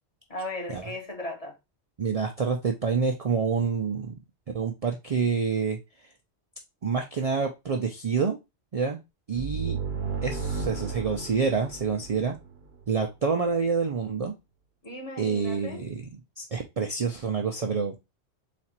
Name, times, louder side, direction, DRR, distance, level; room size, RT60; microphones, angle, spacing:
voice 1, 0.3-1.6 14.8-15.8, left 1 dB, 35° left, 1.1 m, -36 dB
voice 2, 2.0-4.1 4.5-5.8 6.8-8.4 8.7-9.0 9.3-9.8 10.2-12.4 12.9-14.3 15.2-16.0 16.4-17.9, right 5 dB, 45° right, 0.5 m, -27 dB
sound 1, 9.3-12.9, right 5 dB, 70° right, 1.1 m, -34 dB
4.2 x 2.5 x 4.1 m
omnidirectional pair, 1.1 m